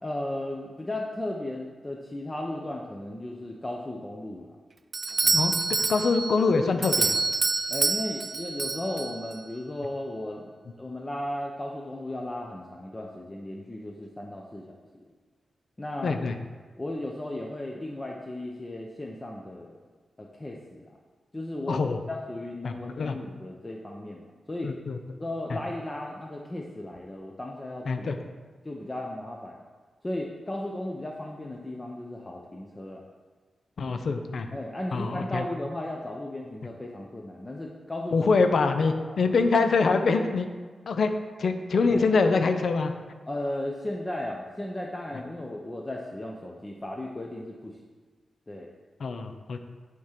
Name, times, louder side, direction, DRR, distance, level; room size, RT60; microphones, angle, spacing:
voice 1, 0.0-4.6 5.2-5.5 7.7-15.1 15.8-16.2 16.8-19.7 20.2-21.0 21.3-24.7 25.2-28.1 28.6-29.6 30.0-33.0 34.5-38.4 39.1-39.2 41.9-42.1 43.3-47.8 48.5-48.7, left 1 dB, 20° left, -1 dB, 0.7 m, -35 dB
Doorbell, 4.9-9.4, right 4 dB, 40° right, 0.3 m, -27 dB
voice 2, 5.3-7.2 16.0-16.3 21.7-22.0 22.6-23.2 24.6-25.0 25.5-25.6 27.9-28.2 33.8-34.5 34.9-35.4 38.1-40.5 40.9-41.1 41.4-42.9 49.0-49.6, left 4 dB, 65° left, 7 dB, 0.6 m, -24 dB
9.2 x 3.7 x 5.8 m, 1.4 s
wide cardioid pair, 110°, 0 cm